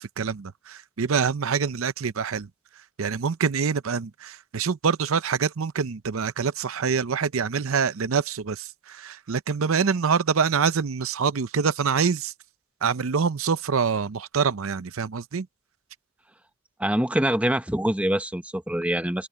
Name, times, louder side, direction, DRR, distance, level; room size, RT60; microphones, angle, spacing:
voice 1, 0.0-2.5 3.0-12.3 12.8-15.5, right 6 dB, 75° right, 0.6 m, -25 dB
voice 2, 16.8-19.3, right 1 dB, 5° right, 0.9 m, -24 dB
open air
head